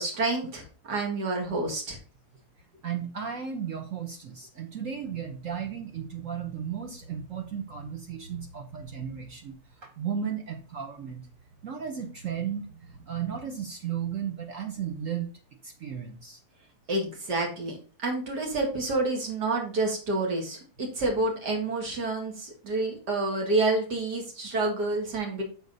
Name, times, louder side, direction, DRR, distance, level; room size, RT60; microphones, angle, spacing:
voice 1, 0.0-2.0 16.9-17.8 18.0-25.4, right 2 dB, 85° right, 1 dB, 2.6 m, -28 dB
voice 2, 2.8-9.5 9.8-11.2 11.6-12.6 12.9-15.3 15.6-16.4, right 8 dB, 60° right, 4 dB, 1.2 m, -34 dB
6.5 x 4.3 x 5.3 m, 0.38 s
omnidirectional pair, 1.7 m